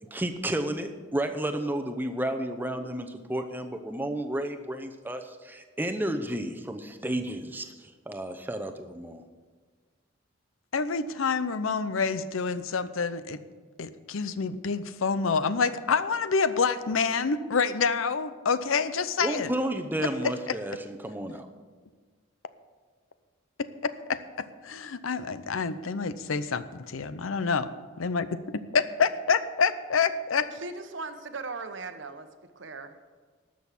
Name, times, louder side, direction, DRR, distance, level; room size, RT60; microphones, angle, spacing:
voice 1, 0.1-9.2 19.2-21.5, right 1 dB, 10° right, 6 dB, 0.7 m, -32 dB
voice 2, 10.7-13.4 13.8-19.5 20.2-20.3 24.1-24.2 24.6-27.7 28.0-28.3 28.7-30.5, left 5 dB, 85° left, 14 dB, 0.6 m, -27 dB
voice 3, 30.6-32.3 32.6-33.0, right 3 dB, 65° right, 9 dB, 0.9 m, -38 dB
12.5 x 6.4 x 8.3 m, 1.5 s
head